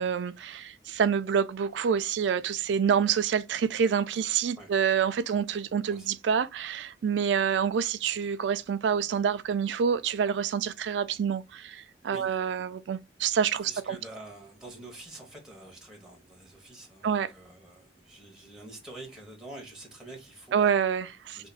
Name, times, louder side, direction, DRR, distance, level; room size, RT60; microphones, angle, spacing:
voice 1, 0.0-14.0 17.0-17.3 20.5-21.4, right 7 dB, 90° right, 0.3 m, -27 dB
voice 2, 13.5-20.8 21.3-21.5, right 2 dB, 5° right, 1.4 m, -46 dB
3.1 x 2.6 x 3.9 m
head